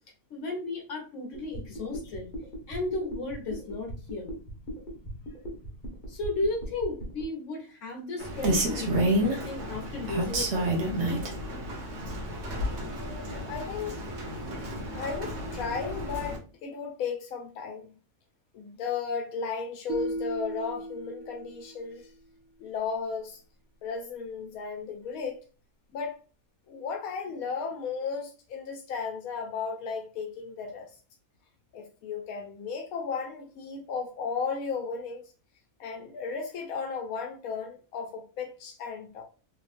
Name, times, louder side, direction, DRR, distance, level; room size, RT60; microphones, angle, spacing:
voice 1, 0.3-2.3 2.7-4.3 6.1-11.2, left 2 dB, 60° left, 1.4 m, -34 dB
sound 1, 1.3-7.2, equal, 40° left, 1.1 m, -39 dB
Rain, 8.2-16.4, right 1 dB, 55° right, 1.1 m, -30 dB
voice 2, 12.8-14.1 14.9-17.9 18.5-22.1 22.6-23.4 23.8-25.4 25.9-26.2 26.7-30.9 31.7-35.3 35.8-39.2, left 5 dB, 90° left, 1.1 m, -35 dB
sound 2, 19.9-22.1, equal, 80° right, 1.1 m, -36 dB
3.4 x 3.1 x 2.4 m
omnidirectional pair, 1.5 m